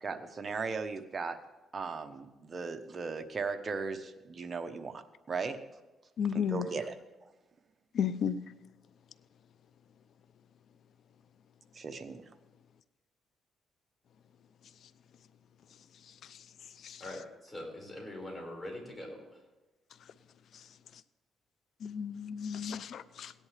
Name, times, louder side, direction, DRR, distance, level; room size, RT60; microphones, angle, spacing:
voice 1, 0.0-1.4 1.7-5.6 6.3-6.9 7.2-7.3 11.7-12.2, right 4 dB, 40° right, 7 dB, 1.1 m, -37 dB
voice 2, 6.2-6.7 7.9-8.4 16.3-16.4 16.8-17.0 21.8-23.3, left 8 dB, 65° left, 15 dB, 0.6 m, -33 dB
voice 3, 17.0-19.4, left 1 dB, 15° left, -1 dB, 5.2 m, -43 dB
17.0 x 10.5 x 3.4 m, 1.1 s
cardioid pair, 90°, 0 cm